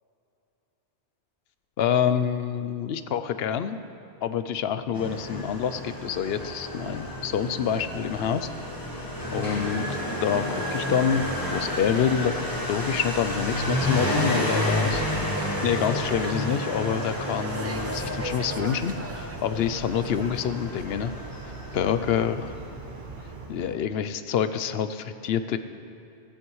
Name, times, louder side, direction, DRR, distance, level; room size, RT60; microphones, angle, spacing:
voice 1, 1.8-3.8 4.2-8.5 9.3-15.0 15.6-21.1 21.7-22.6 23.5-25.6, left 8 dB, 70° left, 11 dB, 0.8 m, -27 dB
Motorcycle, 4.9-23.7, left 1 dB, 20° left, 1.5 m, -31 dB
sound 1, 14.9-21.1, right 1 dB, 20° right, 0.4 m, -37 dB
sound 2, 18.1-23.5, right 5 dB, 55° right, 0.7 m, -43 dB
15.5 x 14.5 x 3.1 m, 2.7 s
omnidirectional pair, 1.1 m